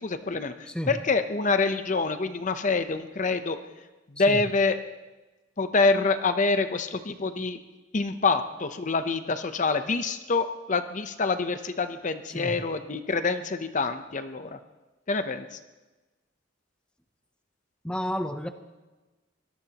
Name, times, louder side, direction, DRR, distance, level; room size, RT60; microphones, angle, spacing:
voice 1, 0.0-0.5 0.9-3.6 4.2-4.8 5.6-7.6 7.9-14.6 15.1-15.6, left 4 dB, 40° left, 9 dB, 0.7 m, -26 dB
voice 2, 17.8-18.5, equal, 5° left, 7 dB, 0.7 m, -31 dB
23.5 x 18.0 x 2.9 m, 1.2 s
head